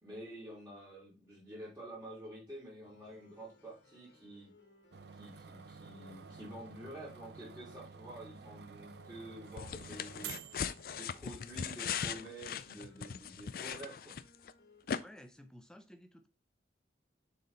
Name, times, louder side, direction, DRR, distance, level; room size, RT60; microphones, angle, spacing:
voice 1, 0.0-4.5 5.1-10.4 10.9-14.2, right 1 dB, 15° right, 3.0 m, -49 dB
sound 1, 2.8-14.8, left 2 dB, 65° left, 1.4 m, -65 dB
sound 2, 4.9-11.4, right 7 dB, 60° right, 0.4 m, -51 dB
sound 3, 9.6-14.5 14.9-15.0, left 7 dB, 50° left, 0.4 m, -39 dB
voice 2, 15.0-16.3, equal, 5° left, 0.6 m, -54 dB
6.6 x 4.1 x 4.3 m
head